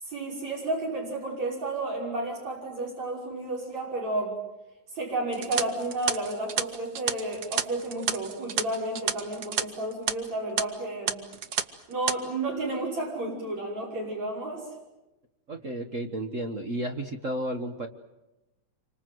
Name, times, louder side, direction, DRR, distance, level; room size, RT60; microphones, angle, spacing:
voice 1, 0.0-4.4 4.9-11.3 11.9-14.7, right 2 dB, 65° right, -2 dB, 7.2 m, -32 dB
sound 1, 5.3-9.6 9.9-10.1 10.6-10.7 11.1-11.6 11.9-12.1, right 7 dB, 80° right, 0.8 m, -30 dB
voice 2, 15.5-17.9, right 1 dB, 50° right, 6 dB, 0.9 m, -32 dB
28.0 x 25.0 x 7.9 m, 0.98 s
omnidirectional pair, 3.4 m